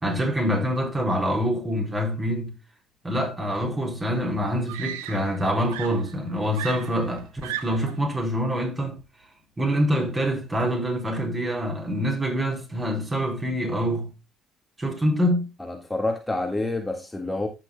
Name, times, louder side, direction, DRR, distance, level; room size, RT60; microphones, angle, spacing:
voice 1, 0.0-2.5 3.0-9.0 9.6-14.1 14.8-15.5, equal, 25° right, 4.4 m, -25 dB
Screaming, 3.8-3.9 4.7-5.4 5.7-8.0 9.0-9.2, right 12 dB, 80° right, 0.8 m, -36 dB
voice 2, 15.6-17.5, left 2 dB, 10° left, 1.7 m, -28 dB
15.0 x 6.2 x 2.2 m
hypercardioid pair, 55°, 0 cm